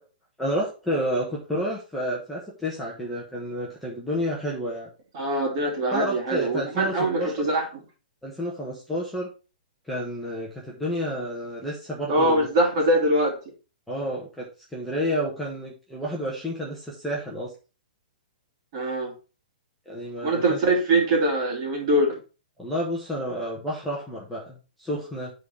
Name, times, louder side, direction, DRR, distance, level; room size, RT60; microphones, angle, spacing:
voice 1, 0.4-4.9 5.9-7.5 8.2-9.3 9.9-12.5 13.9-14.5 14.7-17.5 19.9-20.6 22.6-25.3, equal, ahead, -5 dB, 1.3 m, -30 dB
voice 2, 5.1-7.7 12.1-13.4 18.7-19.1 20.2-22.2, right 1 dB, 35° right, 0 dB, 3.0 m, -23 dB
9.4 x 4.1 x 4.6 m, 0.33 s
hypercardioid pair, 170°, 5 cm